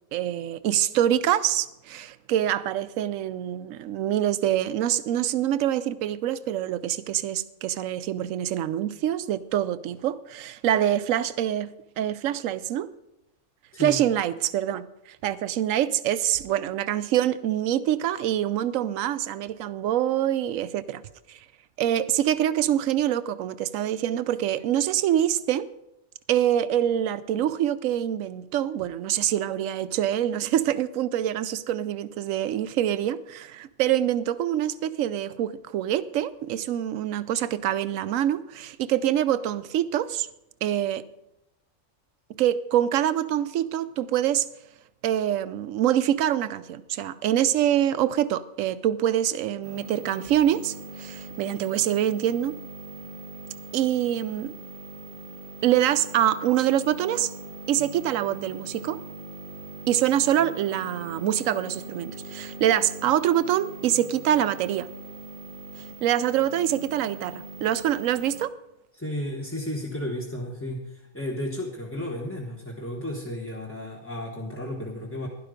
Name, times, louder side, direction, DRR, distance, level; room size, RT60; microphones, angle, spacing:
voice 1, 0.1-12.9 13.8-21.0 21.3-21.4 21.8-25.7 26.3-40.3 40.6-41.0 42.4-44.5 45.0-52.5 53.7-54.5 55.6-57.3 57.7-59.0 59.9-64.9 66.0-68.5, right 11 dB, 85° right, 15 dB, 1.0 m, -25 dB
voice 2, 13.7-14.0 68.9-75.3, left 1 dB, 10° left, -3 dB, 1.0 m, -33 dB
sound 1, 49.6-68.5, right 2 dB, 45° right, 0.9 m, -41 dB
11.5 x 11.0 x 5.0 m, 0.90 s
omnidirectional pair, 1.3 m